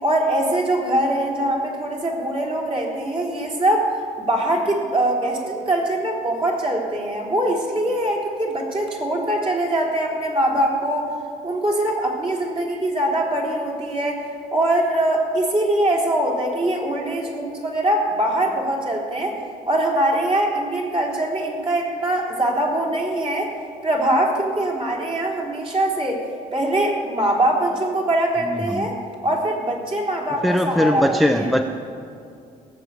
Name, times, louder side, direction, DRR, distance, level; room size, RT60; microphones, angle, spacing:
voice 1, 0.0-3.9 4.2-11.1 11.4-14.2 14.5-19.4 19.7-23.5 23.8-26.2 26.5-29.0 29.2-31.5, right 1 dB, 35° right, -2 dB, 3.6 m, -22 dB
voice 2, 28.4-28.9 30.4-31.6, equal, ahead, 6 dB, 0.6 m, -20 dB
17.0 x 7.2 x 8.2 m, 2.4 s
cardioid pair, 95°, 16 cm